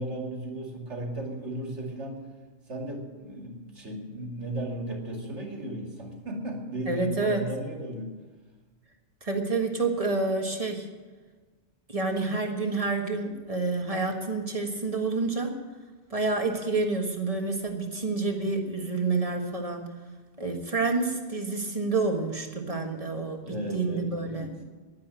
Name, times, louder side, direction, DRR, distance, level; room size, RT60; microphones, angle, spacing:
voice 1, 0.0-2.2 2.7-8.1 23.4-24.6, right 1 dB, 80° right, 1 dB, 2.8 m, -35 dB
voice 2, 6.9-7.5 9.2-10.9 11.9-15.5 16.1-19.9 20.4-24.5, right 3 dB, 30° right, 3 dB, 1.6 m, -28 dB
11.0 x 10.5 x 9.0 m, 1.3 s
omnidirectional pair, 1.2 m